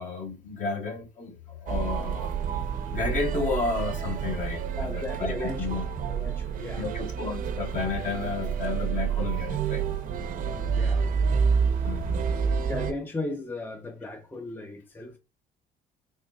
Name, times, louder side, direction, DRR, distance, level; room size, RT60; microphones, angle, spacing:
voice 1, 0.0-2.3 2.9-5.9 6.8-9.8 11.8-12.4, left 4 dB, 50° left, 1.1 m, -32 dB
sound 1, 1.7-12.9, right 6 dB, 55° right, 0.6 m, -28 dB
voice 2, 4.8-6.9 10.4-11.0 11.7-11.9 12.6-15.2, left 2 dB, 10° left, 0.5 m, -37 dB
3.9 x 3.0 x 2.3 m
cardioid pair, 110°, 17 cm